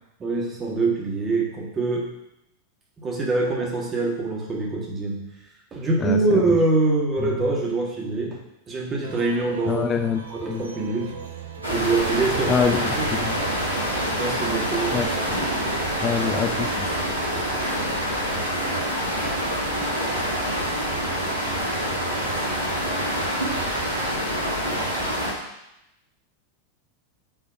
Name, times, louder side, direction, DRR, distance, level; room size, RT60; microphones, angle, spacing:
voice 1, 0.2-2.1 3.0-5.3 5.7-8.4 8.7-9.9 10.3-11.2 11.7-12.7 12.9-13.1 14.1-14.9, right 3 dB, 20° right, -2 dB, 1.7 m, -24 dB
sound 1, 9.0-17.1, right 3 dB, 70° right, 0.7 m, -38 dB
voice 2, 9.7-10.2 10.5-10.6 12.5-13.3 14.9-15.1 16.0-16.9, left 6 dB, 25° left, 7 dB, 0.4 m, -25 dB
sound 2, 11.6-25.3, equal, 85° right, 1.6 m, -26 dB
5.9 x 3.9 x 5.9 m, 0.86 s
figure-of-eight pair, 90°, 0 cm